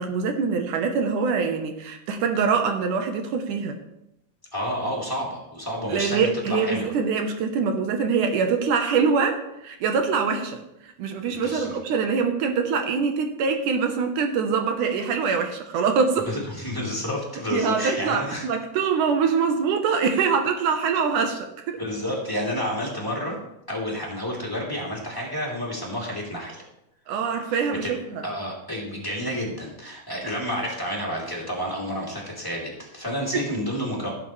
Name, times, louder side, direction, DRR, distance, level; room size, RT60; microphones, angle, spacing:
voice 1, 0.0-3.8 5.9-16.3 17.5-21.8 27.1-28.2 33.3-33.5, right 5 dB, 75° right, 5 dB, 2.4 m, -24 dB
voice 2, 4.5-6.9 11.3-11.8 16.3-18.4 21.8-23.4 23.7-26.6 27.8-27.9 28.2-34.1, equal, 5° left, -5 dB, 2.4 m, -30 dB
16.5 x 8.5 x 3.2 m, 0.85 s
omnidirectional pair, 3.8 m